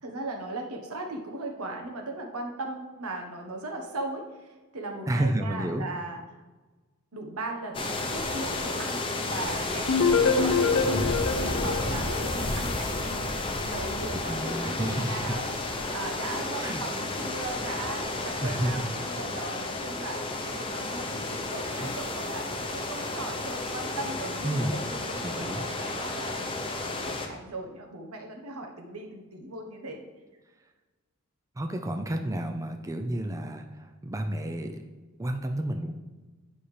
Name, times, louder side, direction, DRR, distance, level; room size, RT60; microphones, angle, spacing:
voice 1, 0.0-6.2 7.1-26.6 27.0-30.0, right 2 dB, 85° right, 2 dB, 1.2 m, -38 dB
voice 2, 5.1-5.8 14.1-15.3 16.6-16.8 18.4-18.7 21.8-21.9 24.4-24.8 25.2-25.6 31.6-34.9 35.2-35.9, right 1 dB, 15° right, 5 dB, 0.4 m, -31 dB
sound 1, 7.7-27.3, left 2 dB, 25° left, 0.7 m, -32 dB
sound 2, 9.9-12.8, left 4 dB, 65° left, 0.6 m, -25 dB
10.0 x 5.5 x 3.3 m, 1.2 s
head